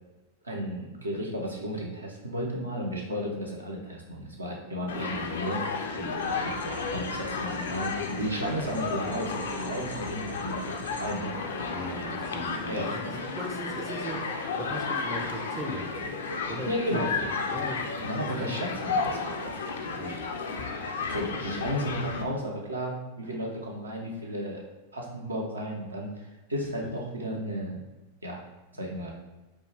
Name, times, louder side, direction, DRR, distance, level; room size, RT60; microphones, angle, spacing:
voice 1, 0.4-5.6 6.2-11.3 12.7-13.2 16.7-17.1 18.0-19.8 21.1-24.6 24.9-27.8 28.2-28.4 28.7-29.1, equal, 80° right, -1 dB, 0.6 m, -34 dB
Human group actions, 4.9-22.2, left 4 dB, 65° left, 0.3 m, -33 dB
sound 1, 6.2-11.2, left 1 dB, 80° left, 0.8 m, -46 dB
voice 2, 11.7-16.1 16.5-17.9 18.4-18.7 20.0-20.2 26.8-26.9, right 1 dB, 10° right, 0 dB, 0.4 m, -39 dB
3.1 x 2.2 x 3.3 m, 1.1 s
figure-of-eight pair, 90°, 0 cm